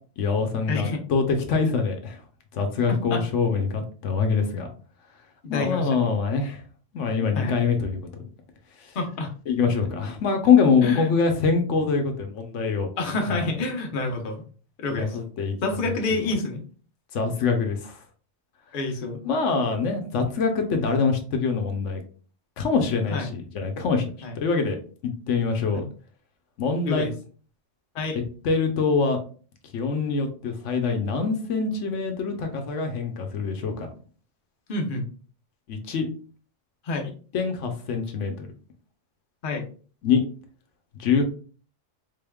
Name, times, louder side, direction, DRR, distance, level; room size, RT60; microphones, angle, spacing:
voice 1, 0.2-2.2 2.5-4.7 5.5-6.6 6.9-8.0 8.8-8.9 9.5-12.9 13.3-13.5 14.9-15.5 17.1-18.0 19.3-22.0 22.6-24.0 24.3-24.8 25.0-25.8 26.6-27.1 28.1-29.2 29.7-33.9 35.7-36.1 37.3-38.5 40.0-40.2 41.0-41.2, left 5 dB, 75° left, 5 dB, 1.0 m, -24 dB
voice 2, 0.7-1.0 2.9-3.2 5.4-6.1 7.3-7.6 8.9-9.3 10.8-11.1 13.0-14.4 14.8-15.2 15.6-16.6 18.7-19.2 23.1-23.3 24.2-24.4 25.7-25.9 26.8-27.1 27.9-28.2 34.7-35.0 36.8-37.1 39.4-39.7, left 2 dB, 50° left, 3 dB, 0.8 m, -28 dB
3.8 x 3.4 x 2.2 m, 0.40 s
omnidirectional pair, 1.3 m